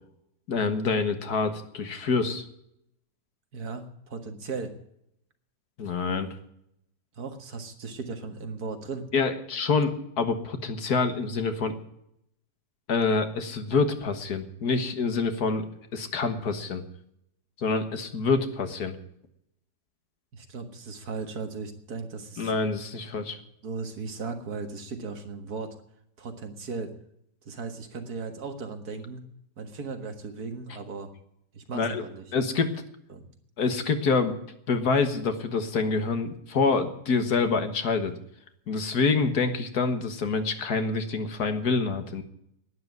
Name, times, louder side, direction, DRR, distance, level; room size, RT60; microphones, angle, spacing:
voice 1, 0.5-2.5 5.8-6.3 9.1-11.7 12.9-15.7 15.9-16.8 17.6-18.9 22.4-23.4 31.7-32.0 32.3-32.7 33.6-34.4 34.7-38.1 38.7-42.2, left 4 dB, 65° left, 8 dB, 1.9 m, -26 dB
voice 2, 3.5-4.7 7.2-9.1 20.3-22.5 23.6-25.7 26.2-26.9 27.4-29.2 29.6-31.1 31.5-32.3 33.1-33.2, right 4 dB, 65° right, 6 dB, 2.1 m, -37 dB
12.0 x 10.0 x 9.4 m, 0.76 s
omnidirectional pair, 1.8 m